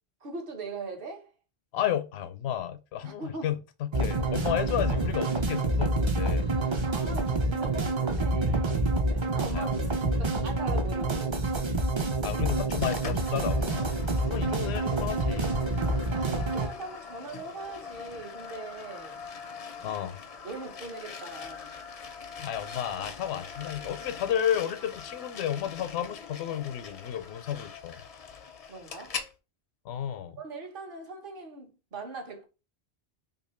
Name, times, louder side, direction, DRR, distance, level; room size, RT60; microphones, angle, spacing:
voice 1, 0.2-1.3 3.0-3.5 6.8-11.4 16.1-19.2 20.4-21.8 28.7-29.2 30.4-32.5, right 3 dB, 60° right, 1.0 m, -41 dB
voice 2, 1.7-6.5 9.5-9.7 12.2-14.0 14.2-15.6 19.8-20.2 22.4-28.0 29.9-30.4, left 10 dB, 85° left, 0.8 m, -32 dB
sound 1, 3.9-16.7, right 2 dB, 40° right, 0.4 m, -27 dB
sound 2, 12.7-29.3, left 6 dB, 50° left, 0.4 m, -43 dB
2.7 x 2.7 x 4.2 m
omnidirectional pair, 1.1 m